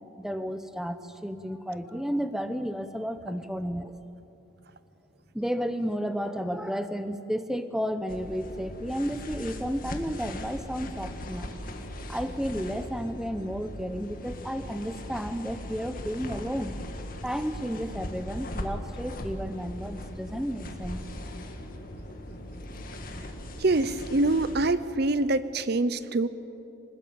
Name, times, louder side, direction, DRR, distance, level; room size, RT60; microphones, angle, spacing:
voice 1, 0.2-3.9 5.3-11.5 12.1-16.8 17.2-21.0, equal, ahead, 10 dB, 0.8 m, -32 dB
sound 1, 8.1-24.7, left 1 dB, 45° left, 2.0 m, -39 dB
voice 2, 23.6-26.3, right 2 dB, 50° right, 14 dB, 0.7 m, -25 dB
25.5 x 20.0 x 8.7 m, 2.8 s
head